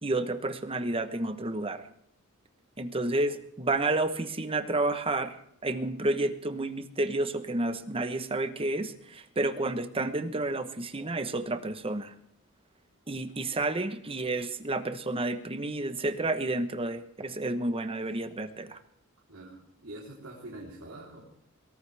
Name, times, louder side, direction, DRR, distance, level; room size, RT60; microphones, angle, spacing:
voice 1, 0.0-1.8 2.8-5.3 5.6-12.1 13.1-18.8, right 2 dB, 25° right, 9 dB, 1.1 m, -30 dB
voice 2, 19.3-21.2, right 1 dB, 75° right, -5 dB, 3.7 m, -45 dB
22.5 x 17.5 x 3.5 m, 0.76 s
head